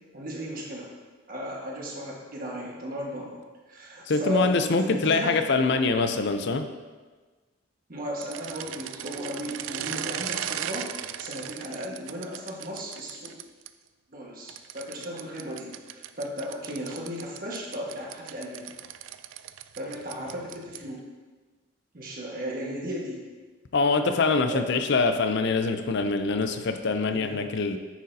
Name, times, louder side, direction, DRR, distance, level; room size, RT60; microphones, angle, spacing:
voice 1, 0.1-0.9 1.3-3.4 3.7-5.4 7.9-10.9 11.2-13.3 14.1-18.7 19.8-21.0 21.9-23.2 24.5-24.7 27.1-27.4, equal, 50° right, -3 dB, 1.5 m, -35 dB
voice 2, 4.1-6.7 23.7-27.8, left 4 dB, 60° left, 8 dB, 0.5 m, -24 dB
sound 1, 8.2-13.7 14.5-21.0, right 10 dB, 70° right, 0.3 m, -38 dB
9.2 x 6.5 x 2.7 m, 1.3 s
head